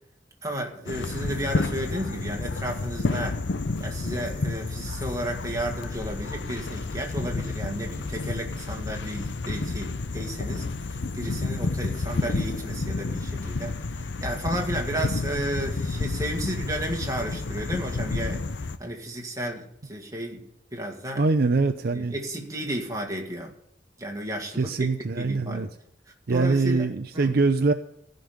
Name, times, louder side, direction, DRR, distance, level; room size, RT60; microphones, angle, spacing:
voice 1, 0.4-3.4 3.8-18.4 18.8-20.4 20.7-21.2 21.9-23.5 24.0-24.9 25.2-25.7 26.3-27.3, right 1 dB, 20° right, 1 dB, 2.0 m, -33 dB
sound 1, 0.9-18.8, left 3 dB, 65° left, 0.7 m, -30 dB
voice 2, 21.2-22.1 24.6-25.7 26.3-27.7, right 3 dB, 55° right, 8 dB, 0.6 m, -23 dB
15.5 x 5.3 x 9.5 m, 0.75 s
head